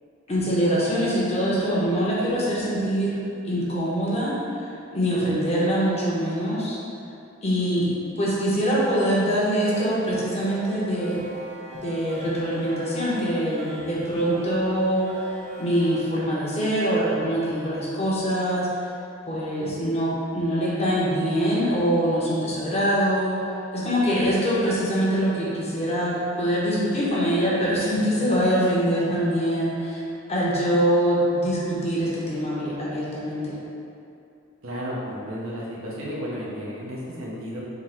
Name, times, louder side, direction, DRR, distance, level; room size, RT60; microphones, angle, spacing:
voice 1, 0.3-3.1 3.4-6.8 7.4-7.9 8.2-11.2 11.7-15.3 15.6-18.7 19.3-30.0 30.3-33.6, equal, 30° left, -6 dB, 0.8 m, -24 dB
sound 1, 9.5-16.0, right 2 dB, 35° right, 0.5 m, -39 dB
voice 2, 34.6-37.6, equal, 90° right, -5 dB, 0.9 m, -33 dB
3.8 x 2.5 x 4.3 m, 2.6 s
head